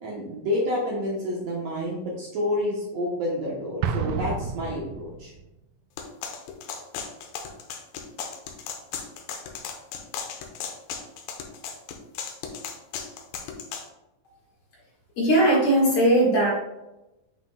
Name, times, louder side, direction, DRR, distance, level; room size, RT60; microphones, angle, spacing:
voice 1, 0.0-5.3, left 1 dB, 65° right, -3 dB, 1.7 m, -29 dB
Explosion, 3.8-5.5, right 6 dB, 80° right, 2.0 m, -30 dB
sound 1, 6.0-13.9, left 6 dB, 80° left, 2.4 m, -36 dB
voice 2, 15.2-16.5, right 1 dB, 50° left, -5 dB, 2.4 m, -19 dB
7.6 x 5.8 x 2.2 m, 0.93 s
omnidirectional pair, 4.2 m